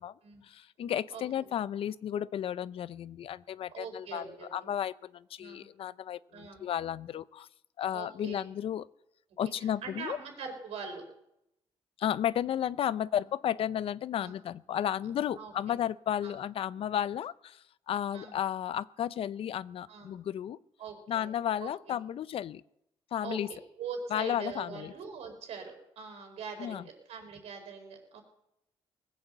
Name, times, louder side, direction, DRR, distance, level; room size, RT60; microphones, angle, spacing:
voice 1, 0.4-7.5 7.8-8.9 9.4-10.2 12.0-20.6 21.1-22.6 23.1-23.5 24.1-24.9 26.6-26.8, left 10 dB, 60° left, 18 dB, 0.5 m, -33 dB
voice 2, 3.7-4.7 5.4-5.7 6.3-6.6 7.9-8.4 9.6-11.0 14.2-14.3 15.4-15.5 16.2-16.4 18.1-18.3 19.9-20.2 20.8-21.3 21.6-21.7 23.2-28.2, right 5 dB, 80° right, 3 dB, 4.6 m, -42 dB
19.5 x 8.6 x 7.7 m, 0.82 s
cardioid pair, 105°, 11 cm